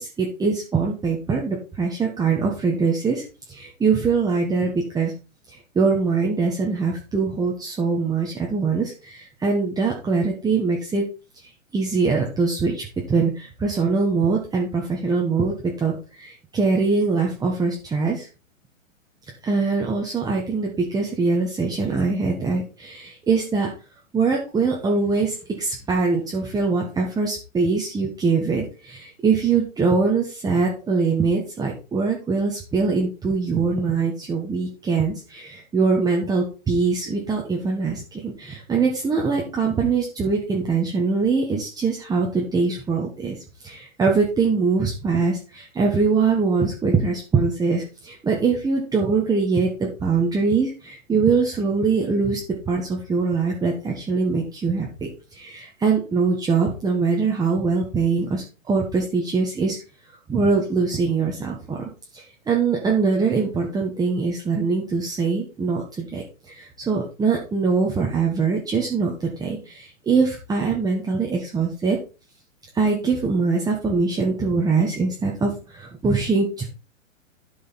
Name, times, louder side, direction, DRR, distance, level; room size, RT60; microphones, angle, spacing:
voice 1, 0.0-3.2 3.5-5.1 5.5-11.1 11.7-18.3 19.4-23.7 24.1-43.4 43.6-52.4 52.7-59.8 60.3-61.8 62.1-72.0 72.7-76.7, right 4 dB, 10° right, -1 dB, 1.5 m, -23 dB
12.5 x 5.5 x 4.2 m, 0.33 s
hypercardioid pair, 130°, 40 cm